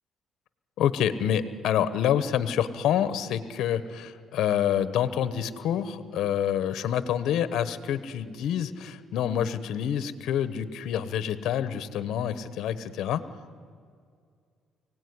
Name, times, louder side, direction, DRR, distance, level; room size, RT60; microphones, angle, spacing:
voice 1, 0.8-13.2, left 9 dB, 75° left, 13 dB, 1.2 m, -27 dB
24.0 x 18.0 x 9.8 m, 2.1 s
cardioid pair, 100°, 0 cm